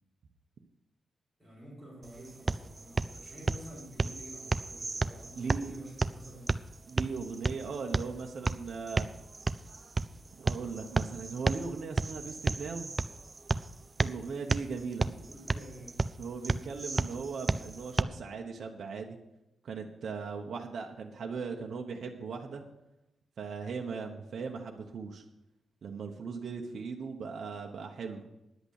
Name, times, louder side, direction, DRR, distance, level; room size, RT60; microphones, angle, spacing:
voice 1, 1.4-6.5 15.2-16.0 28.0-28.3, right 1 dB, ahead, -8 dB, 5.3 m, -49 dB
sound 1, 2.0-18.0, right 3 dB, 25° right, 0.3 m, -33 dB
voice 2, 5.3-5.7 6.9-9.1 10.3-12.9 14.0-15.2 16.2-19.2 19.6-22.6 23.4-25.2 25.8-28.2, right 5 dB, 55° right, 1 dB, 1.0 m, -38 dB
10.5 x 8.1 x 6.5 m, 0.92 s
wide cardioid pair, 160°, 0 cm